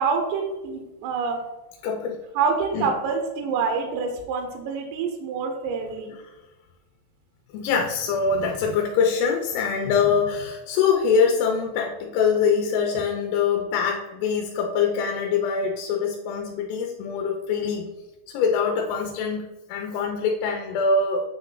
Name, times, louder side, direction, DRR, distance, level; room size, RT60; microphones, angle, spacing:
voice 1, 0.0-1.4 2.4-6.1, right 5 dB, 80° right, 3 dB, 2.6 m, -26 dB
voice 2, 1.8-2.2 2.7-2.9 7.5-17.9 18.3-21.2, left 5 dB, 90° left, 0 dB, 3.3 m, -24 dB
9.0 x 3.1 x 3.8 m, 1.1 s
omnidirectional pair, 5.7 m